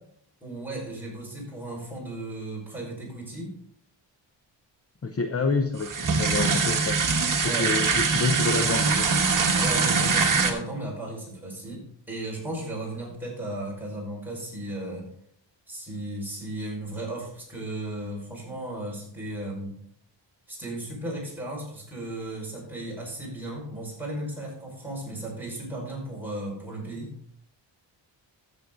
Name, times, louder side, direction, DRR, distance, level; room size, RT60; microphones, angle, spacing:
voice 1, 0.4-3.6 7.4-7.7 9.6-15.1 15.7-19.8 20.5-27.1, right 1 dB, 5° right, -4 dB, 5.2 m, -35 dB
voice 2, 5.0-7.1 7.4-9.1, left 4 dB, 30° left, 7 dB, 0.7 m, -28 dB
sound 1, 5.8-10.5, right 4 dB, 45° right, 1.5 m, -23 dB
13.5 x 7.5 x 3.9 m, 0.67 s
wide cardioid pair, 125°, 45 cm